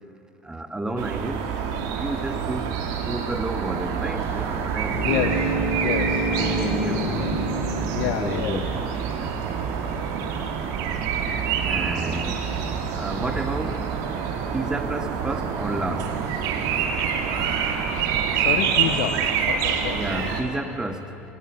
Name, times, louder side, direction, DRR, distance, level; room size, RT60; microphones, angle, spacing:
voice 1, 0.4-1.5 1.9-5.2 6.4-7.3 8.0-9.4 11.7-12.4 12.9-13.9 14.5-16.2 19.9-21.2, right 1 dB, 10° right, 7 dB, 1.8 m, -31 dB
sound 1, 1.0-20.4, right 7 dB, 60° right, 2.5 m, -27 dB
sound 2, 4.2-19.2, right 6 dB, 35° right, 1.4 m, -39 dB
sound 3, 4.9-8.9, right 1 dB, 25° left, 6.9 m, -28 dB
voice 2, 5.0-5.5 5.8-6.3 7.9-8.7 18.3-20.0, left 11 dB, 60° left, 9 dB, 1.0 m, -28 dB
26.0 x 19.5 x 8.0 m, 2.9 s
hypercardioid pair, 70°, 7 cm